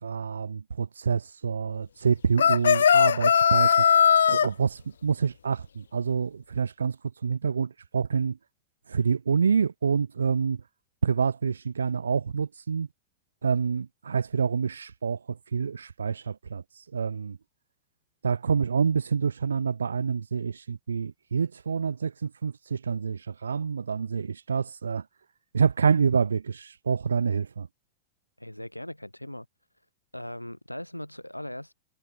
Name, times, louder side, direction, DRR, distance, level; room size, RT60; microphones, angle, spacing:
voice 1, 0.0-8.4 8.9-10.6 11.0-12.9 13.4-17.4 18.2-25.1 25.5-27.7, right 6 dB, 70° right, 2.4 m, -27 dB
sound 1, 2.4-4.5, left 7 dB, 70° left, 0.4 m, -19 dB
voice 2, 28.4-29.4 30.1-31.7, left 1 dB, 90° left, 1.5 m, -39 dB
figure-of-eight pair, 90°, 0 cm